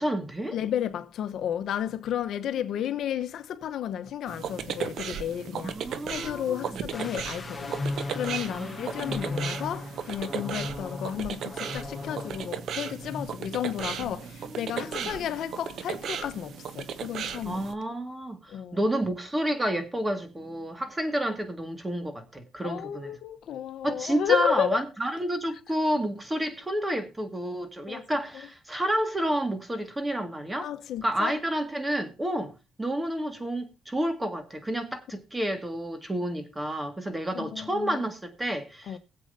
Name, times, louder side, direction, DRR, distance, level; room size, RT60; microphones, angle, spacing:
voice 1, 0.0-0.6 5.6-6.8 8.5-9.2 14.0-14.2 14.4-15.1 17.4-23.1 23.8-30.7 31.0-32.5 32.8-39.0, right 1 dB, 15° right, 2.0 m, -30 dB
voice 2, 0.5-5.8 6.1-17.6 18.5-18.9 22.6-24.8 27.9-28.1 30.6-31.4 37.3-38.0 38.9-39.0, left 10 dB, 65° left, 1.0 m, -32 dB
sound 1, 4.3-17.7, right 7 dB, 65° right, 1.1 m, -36 dB
sound 2, 6.9-12.6 12.9-13.2, left 3 dB, 25° left, 1.1 m, -37 dB
22.0 x 7.8 x 2.7 m
cardioid pair, 115°, 0 cm